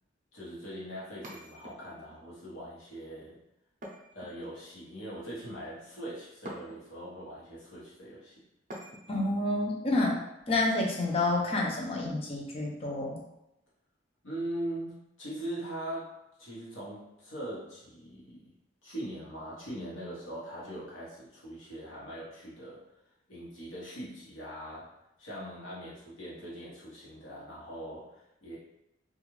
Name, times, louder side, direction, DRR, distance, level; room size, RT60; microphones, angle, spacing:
voice 1, 0.3-3.4 4.1-8.4 14.2-18.4 18.8-22.8 23.3-28.6, right 1 dB, 85° left, -7 dB, 1.2 m, -41 dB
sound 1, 1.2-2.2 3.8-4.8 6.4-7.1 8.7-9.3, equal, 40° right, 0.6 m, -47 dB
voice 2, 9.1-10.2 10.5-13.2, left 2 dB, 30° left, -2 dB, 0.5 m, -29 dB
2.4 x 2.4 x 3.1 m, 0.88 s
head